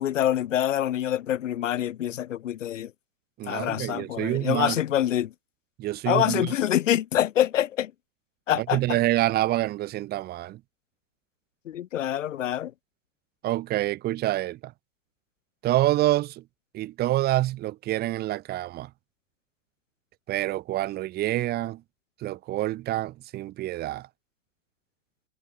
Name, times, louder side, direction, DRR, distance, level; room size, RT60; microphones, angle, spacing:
voice 1, 0.0-2.9 3.5-5.3 6.1-7.9 8.5-9.0 11.7-12.7, left 11 dB, 80° left, 1.0 m, -26 dB
voice 2, 3.4-4.8 5.8-6.5 8.5-10.6 13.4-14.7 15.6-16.4 16.7-18.9 20.3-21.8 22.2-24.1, right 15 dB, 25° right, 0.9 m, -27 dB
hypercardioid pair, 120°, 37 cm